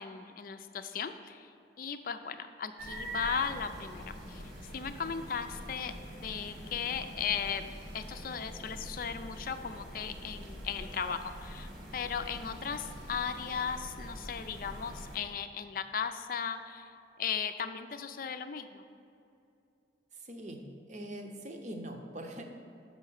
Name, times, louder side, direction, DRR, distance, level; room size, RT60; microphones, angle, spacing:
voice 1, 0.0-1.5 1.8-4.4 4.7-5.9 6.2-16.9 17.2-18.8, left 6 dB, 50° left, 9 dB, 0.4 m, -37 dB
sound 1, 2.8-15.2, equal, 85° right, 1.6 m, -45 dB
voice 2, 20.1-22.4, right 1 dB, 40° right, 3 dB, 0.8 m, -43 dB
6.6 x 5.7 x 6.4 m, 2.6 s
head